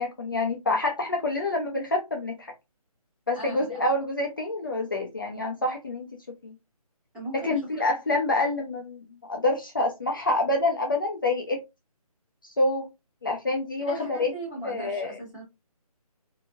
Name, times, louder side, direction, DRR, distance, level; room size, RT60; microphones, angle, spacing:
voice 1, 0.0-2.5 3.3-6.5 7.3-11.6 12.4-12.9 13.2-14.3 14.6-15.2, left 2 dB, 35° left, 0.5 m, -27 dB
voice 2, 3.3-3.8 7.1-7.6 13.9-15.4, right 2 dB, 5° right, 0.7 m, -38 dB
2.8 x 2.7 x 2.3 m
hypercardioid pair, 170°, 19 cm